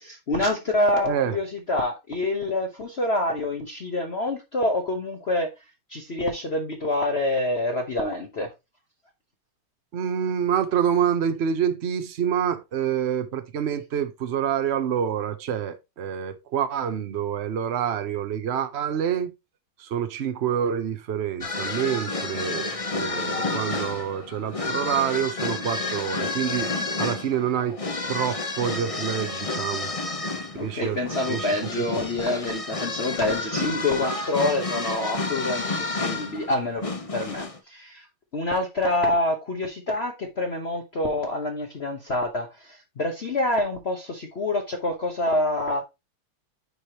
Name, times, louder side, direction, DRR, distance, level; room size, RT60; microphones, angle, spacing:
voice 1, 0.0-5.5 5.9-8.5 26.8-26.9 30.5-38.1 38.3-45.8, left 2 dB, 45° left, 0.8 m, -26 dB
voice 2, 9.9-19.3 19.8-26.7 27.0-27.8 28.1-29.9 30.6-31.0 31.3-31.8, right 8 dB, 85° right, 0.5 m, -27 dB
sound 1, 21.4-37.6, left 3 dB, 65° left, 0.3 m, -30 dB
9.6 x 4.8 x 2.9 m
omnidirectional pair, 2.3 m